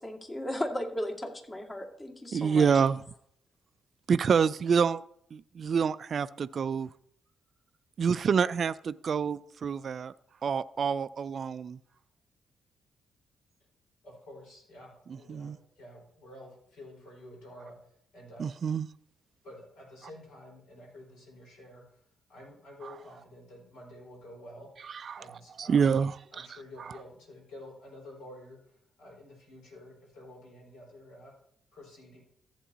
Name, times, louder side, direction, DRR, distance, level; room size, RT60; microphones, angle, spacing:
voice 1, 0.0-2.8, left 1 dB, 30° left, 2 dB, 2.1 m, -36 dB
voice 2, 2.3-3.0 4.1-5.0 5.3-6.9 8.0-10.1 10.4-11.8 15.3-15.6 18.4-18.9 25.0-25.2 25.6-26.5, right 6 dB, 50° right, 15 dB, 0.3 m, -27 dB
voice 3, 14.0-18.5 19.4-22.0 22.3-24.7 25.2-26.0 26.3-31.3 31.7-32.2, left 1 dB, 75° left, -2 dB, 4.6 m, -50 dB
14.5 x 8.1 x 2.9 m, 0.66 s
hypercardioid pair, 40°, 0 cm